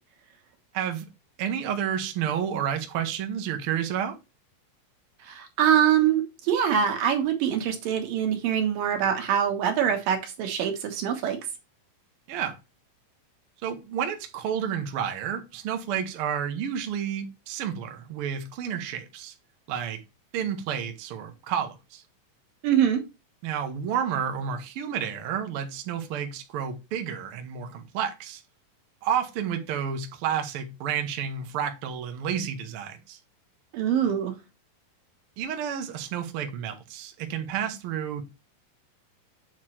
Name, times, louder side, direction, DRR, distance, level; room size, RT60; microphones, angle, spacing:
voice 1, 0.7-1.0 1.4-4.2 12.3-12.6 13.6-19.3 19.7-20.0 20.3-22.0 23.4-28.4 29.0-33.2 35.4-38.2, right 8 dB, 65° right, 1.4 m, -30 dB
voice 2, 5.2-11.4 22.6-23.0 33.7-34.3, right 9 dB, 90° right, 3.0 m, -24 dB
8.2 x 3.0 x 4.4 m
omnidirectional pair, 3.8 m